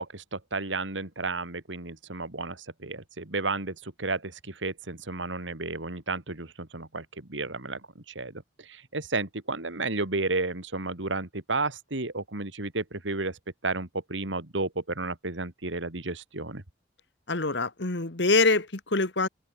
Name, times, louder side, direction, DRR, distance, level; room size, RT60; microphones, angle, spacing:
voice 1, 0.0-16.6, right 3 dB, 85° right, 2.7 m, -32 dB
voice 2, 17.3-19.3, left 3 dB, 70° left, 2.0 m, -24 dB
head